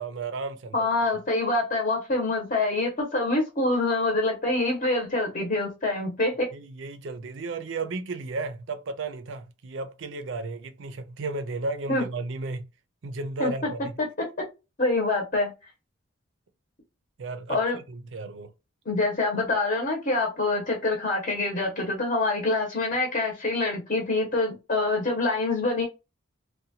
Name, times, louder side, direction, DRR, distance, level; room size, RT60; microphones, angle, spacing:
voice 1, 0.0-0.9 6.5-12.7 13.0-13.9 17.2-18.5, right 3 dB, 60° right, 0.5 m, -34 dB
voice 2, 0.7-6.5 11.9-12.0 13.4-13.5 14.8-15.5 17.5-17.8 18.9-25.8, left 2 dB, 40° left, 0.8 m, -25 dB
2.7 x 2.2 x 2.8 m
head